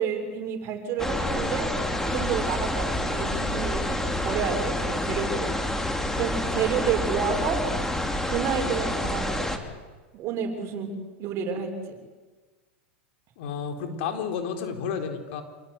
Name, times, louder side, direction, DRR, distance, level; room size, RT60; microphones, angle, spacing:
voice 1, 0.0-1.7 2.0-5.5 6.2-7.6 8.3-9.6 10.1-10.9 11.2-11.7, right 7 dB, 45° right, 4 dB, 6.5 m, -30 dB
sound 1, 1.0-9.6, left 1 dB, 5° left, 2.9 m, -28 dB
voice 2, 13.4-15.4, left 6 dB, 65° left, 6 dB, 3.9 m, -31 dB
28.0 x 18.0 x 9.7 m, 1.3 s
hypercardioid pair, 110°, 7 cm